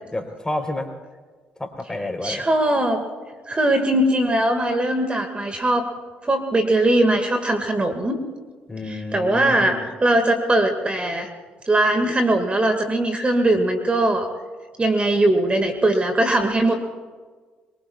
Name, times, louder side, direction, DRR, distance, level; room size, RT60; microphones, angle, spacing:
voice 1, 0.1-0.9 1.6-2.5 8.7-9.9, left 2 dB, 15° left, 4 dB, 3.9 m, -30 dB
voice 2, 2.2-3.0 3.5-5.9 6.2-8.2 8.9-11.3 11.7-14.3 14.8-16.7, right 1 dB, 25° right, 6 dB, 2.1 m, -20 dB
24.0 x 23.0 x 2.4 m, 1.5 s
figure-of-eight pair, 45°, 5 cm